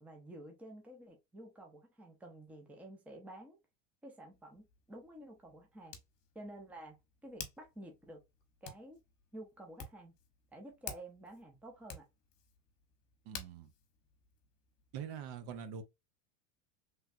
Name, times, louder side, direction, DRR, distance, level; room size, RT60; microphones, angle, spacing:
voice 1, 0.0-3.6 4.0-6.0 6.3-7.0 7.2-8.2 8.6-9.0 9.3-10.1 10.5-12.1, right 1 dB, 5° right, 0.6 m, -51 dB
Hands, 4.3-15.1, left 7 dB, 50° left, 1.0 m, -53 dB
voice 2, 13.3-13.7 14.9-15.8, right 7 dB, 55° right, 0.7 m, -44 dB
3.3 x 2.3 x 2.5 m
supercardioid pair, 135°, 43 cm